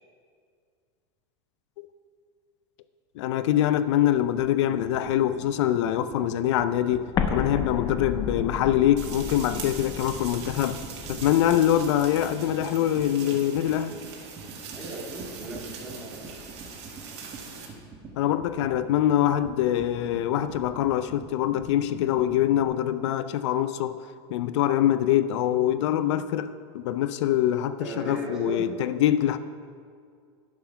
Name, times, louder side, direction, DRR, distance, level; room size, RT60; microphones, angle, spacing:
voice 1, 3.2-10.8 11.1-13.9 18.2-24.0 24.3-29.4, left 11 dB, 85° left, 0.4 m, -24 dB
sound 1, 4.2-22.7, right 4 dB, 25° right, 1.1 m, -45 dB
Explosion, 7.1-11.9, left 6 dB, 25° left, 0.5 m, -33 dB
sound 2, 9.0-17.7, right 5 dB, 80° right, 1.8 m, -41 dB
voice 2, 14.7-16.3 27.8-28.7, right 1 dB, 5° right, 1.8 m, -36 dB
10.5 x 5.9 x 5.7 m
supercardioid pair, 165°, 15 cm